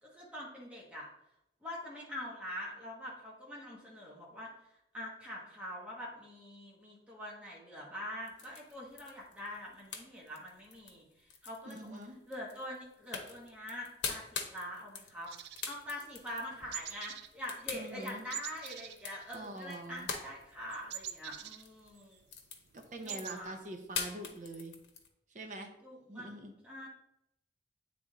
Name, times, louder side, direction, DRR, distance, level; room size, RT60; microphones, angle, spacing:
voice 1, 0.0-1.1 1.6-4.5 4.9-12.0 12.3-15.3 15.7-22.2 23.0-23.6 25.8-26.3 26.6-26.9, left 1 dB, 5° right, -4 dB, 1.1 m, -44 dB
sound 1, 8.3-25.1, left 5 dB, 85° left, 0.8 m, -44 dB
voice 2, 11.6-12.2 17.7-18.2 19.3-20.1 22.7-24.7 25.3-25.7 26.1-26.6, right 1 dB, 45° right, 4 dB, 0.8 m, -44 dB
sound 2, 15.3-16.4 16.7-17.3 17.6-17.8 18.3-19.8 20.1-22.2 22.6-22.7 22.9-23.4, right 10 dB, 75° right, 0.4 m, -45 dB
8.2 x 3.4 x 3.8 m, 0.83 s
head